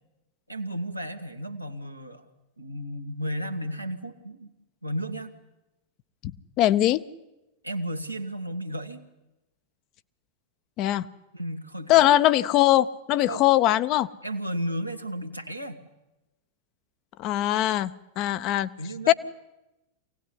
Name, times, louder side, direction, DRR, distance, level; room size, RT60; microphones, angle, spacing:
voice 1, 0.5-2.3 2.6-4.5 4.8-5.3 7.6-9.0 11.3-12.1 13.2-13.4 14.2-15.8 18.8-19.1, equal, 90° right, 4 dB, 1.7 m, -33 dB
voice 2, 6.6-7.0 10.8-11.1 11.9-14.1 17.2-17.9 18.2-18.7 19.1-19.2, left 14 dB, 40° left, 14 dB, 0.8 m, -21 dB
24.0 x 17.5 x 9.8 m, 0.98 s
figure-of-eight pair, 90°, 0 cm